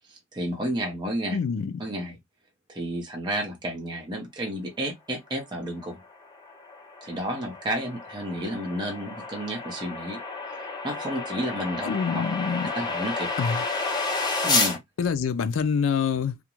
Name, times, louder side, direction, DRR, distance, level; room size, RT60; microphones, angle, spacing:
voice 1, 0.1-1.4 1.8-2.2 2.7-6.0 7.0-10.2 10.8-11.9 12.7-13.3 14.4-14.8, right 1 dB, 20° right, 0.7 m, -31 dB
voice 2, 1.3-1.8 11.8-12.7 13.4-13.7 15.0-16.4, left 6 dB, 70° left, 0.4 m, -26 dB
sound 1, 6.1-14.8, left 3 dB, 20° left, 0.6 m, -30 dB
2.4 x 2.1 x 2.9 m
head